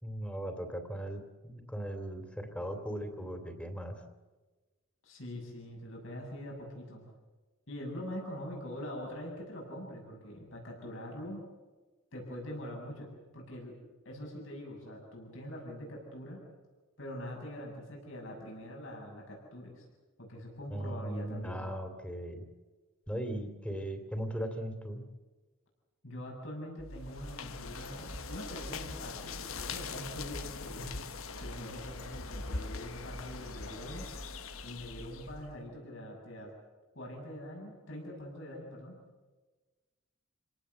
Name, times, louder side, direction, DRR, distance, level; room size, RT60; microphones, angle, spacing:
voice 1, 0.0-4.0 20.7-22.4 23.1-25.1, right 1 dB, 5° left, 6 dB, 2.9 m, -38 dB
voice 2, 5.0-7.0 7.7-11.4 12.1-13.8 14.0-16.4 17.0-19.9 20.2-21.7 26.0-31.0 31.4-34.1 34.6-36.5 36.9-39.0, equal, 65° left, -1 dB, 7.3 m, -43 dB
sound 1, 26.8-35.5, equal, 40° left, 3.2 m, -48 dB
sound 2, 27.0-35.4, left 5 dB, 85° left, 1.3 m, -43 dB
29.0 x 18.5 x 8.1 m, 1.3 s
head